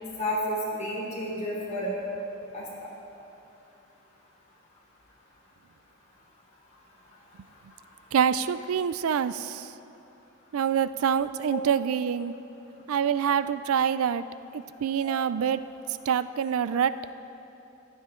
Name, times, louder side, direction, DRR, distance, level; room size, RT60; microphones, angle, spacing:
voice 1, 0.2-1.9 2.5-2.6 11.5-11.6 15.0-15.1, equal, 35° left, -5 dB, 3.3 m, -31 dB
voice 2, 8.1-9.6 10.5-12.3 12.9-14.3 14.5-15.6 16.1-16.9, right 8 dB, 85° right, 14 dB, 0.4 m, -26 dB
15.0 x 11.5 x 3.7 m, 2.8 s
head